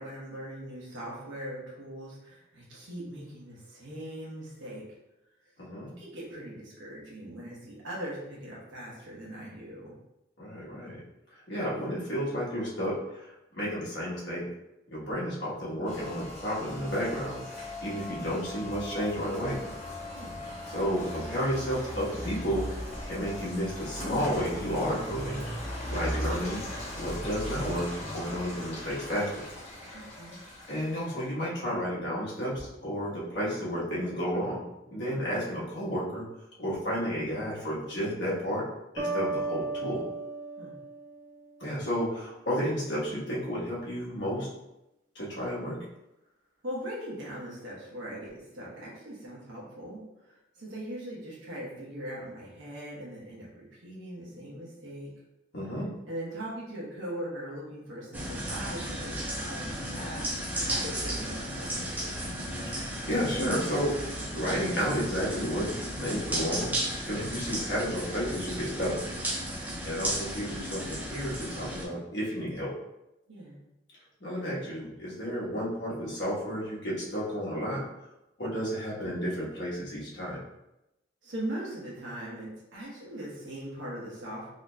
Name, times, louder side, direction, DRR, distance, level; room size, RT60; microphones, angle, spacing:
voice 1, 0.0-4.8 6.0-9.9 20.1-20.4 29.9-30.4 40.6-40.7 46.6-55.1 56.1-62.2 69.7-70.0 73.3-73.6 81.2-84.5, right 1 dB, 75° right, -6 dB, 1.1 m, -40 dB
voice 2, 5.6-5.9 10.4-11.0 11.3-14.5 14.9-17.4 17.8-19.6 20.7-22.7 23.0-25.4 25.9-26.6 27.0-29.3 30.7-34.6 34.9-36.2 36.6-38.6 38.9-40.0 41.6-44.5 45.1-45.8 55.5-55.9 62.7-65.7 66.0-66.7 67.0-69.0 69.8-72.7 74.2-77.8 78.4-80.4, equal, 60° left, -7 dB, 1.2 m, -32 dB
Rain, 15.8-31.3, left 1 dB, 35° left, 1.1 m, -38 dB
sound 1, 39.0-41.8, right 3 dB, 45° right, 1.1 m, -35 dB
sound 2, 58.1-71.9, right 1 dB, 10° right, 0.4 m, -34 dB
3.8 x 2.9 x 2.2 m, 0.91 s
head